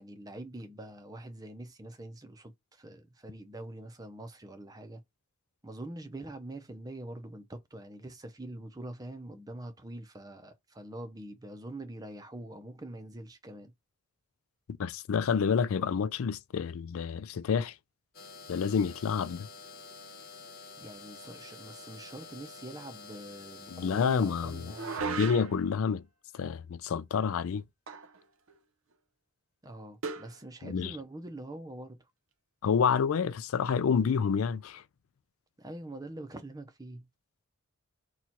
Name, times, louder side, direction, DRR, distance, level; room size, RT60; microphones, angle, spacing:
voice 1, 0.0-5.0 5.6-13.7 20.8-25.0 29.6-32.1 35.6-37.1, right 1 dB, 15° right, 0.6 m, -44 dB
voice 2, 14.8-17.8 18.5-19.5 23.7-24.7 25.0-26.0 26.3-27.6 30.6-30.9 32.6-34.8, left 6 dB, 75° left, 0.4 m, -28 dB
sound 1, 18.1-25.0, left 4 dB, 45° left, 0.7 m, -48 dB
sound 2, 24.7-25.7 27.9-28.2 28.5-28.6 30.0-30.4, right 4 dB, 70° right, 0.7 m, -36 dB
4.2 x 2.4 x 4.4 m
head